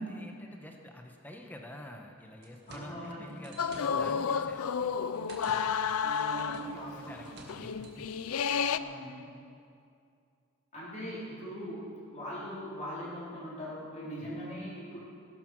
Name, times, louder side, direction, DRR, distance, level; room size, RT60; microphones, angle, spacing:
voice 1, 0.0-4.6 6.6-8.1 14.2-14.4, left 1 dB, 10° left, 2 dB, 1.3 m, -48 dB
sound 1, 2.2-8.6, right 2 dB, 50° right, 2.0 m, -53 dB
voice 2, 2.7-3.3 6.0-7.2 8.7-9.3 10.7-11.8 12.1-15.0, equal, 35° left, -9 dB, 4.0 m, -41 dB
sound 2, 3.6-6.8 7.1-7.2 7.4-8.8, left 6 dB, 85° left, 0.5 m, -31 dB
17.5 x 11.5 x 6.3 m, 2.5 s
head